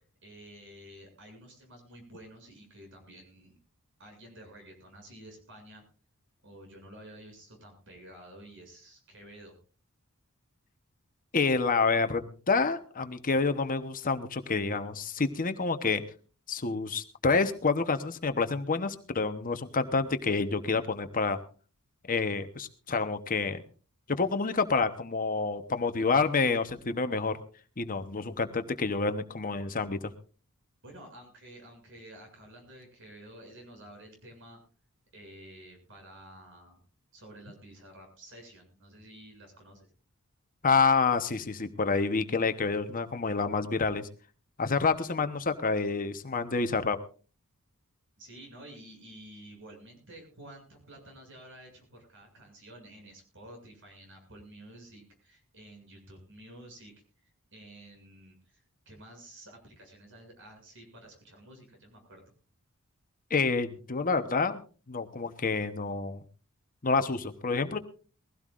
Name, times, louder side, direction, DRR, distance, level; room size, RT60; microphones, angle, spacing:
voice 1, 0.0-3.6 4.0-5.8 6.4-9.5 30.8-34.6 35.1-36.8 37.1-39.9 48.2-56.9 57.2-62.2, right 1 dB, 60° right, 3 dB, 7.2 m, -51 dB
voice 2, 11.3-16.0 16.5-21.4 22.1-23.6 24.1-27.4 27.8-30.1 40.6-44.1 44.6-47.0 63.3-64.6 64.9-66.2 66.8-67.8, left 4 dB, 40° left, 9 dB, 1.0 m, -28 dB
21.5 x 16.5 x 2.5 m, 0.37 s
head